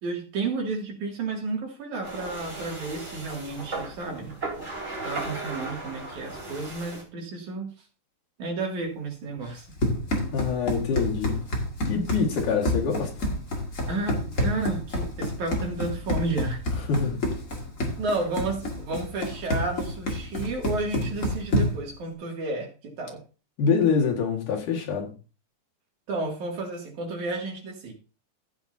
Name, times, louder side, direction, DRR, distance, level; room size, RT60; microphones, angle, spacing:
voice 1, 0.0-4.4 5.0-7.7 8.4-9.7 13.9-16.6 18.0-23.2 26.1-27.9, right 3 dB, 70° right, 3.8 m, -32 dB
sound 1, 2.0-7.0, right 2 dB, 25° right, 3.9 m, -36 dB
Run, 9.5-21.9, left 1 dB, 30° left, 2.1 m, -28 dB
voice 2, 10.3-11.4 11.9-13.2 16.9-17.3 23.6-25.1, left 6 dB, 80° left, 3.5 m, -25 dB
14.5 x 8.8 x 2.8 m
omnidirectional pair, 3.6 m